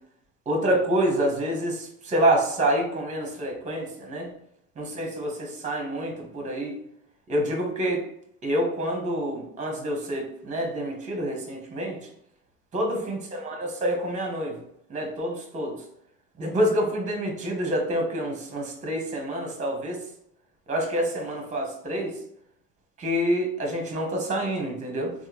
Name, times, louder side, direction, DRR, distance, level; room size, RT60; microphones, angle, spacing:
voice 1, 0.5-4.3 4.8-6.7 7.3-8.0 8.4-12.1 12.7-14.6 14.9-15.8 16.4-20.0 20.7-22.2 23.0-25.1, right 1 dB, 25° right, 1 dB, 0.9 m, -27 dB
3.4 x 2.1 x 2.9 m, 0.73 s
cardioid pair, 125°, 29 cm